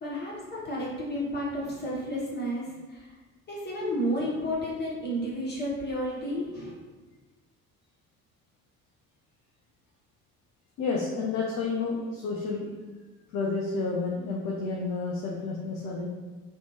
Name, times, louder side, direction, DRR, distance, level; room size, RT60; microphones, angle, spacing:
voice 1, 0.0-3.1 3.5-6.7, equal, 25° left, -6 dB, 1.1 m, -32 dB
voice 2, 10.8-12.7 13.3-16.1, left 4 dB, 40° left, -2 dB, 0.5 m, -30 dB
2.7 x 2.1 x 3.0 m, 1.3 s
figure-of-eight pair, 50°, 45 cm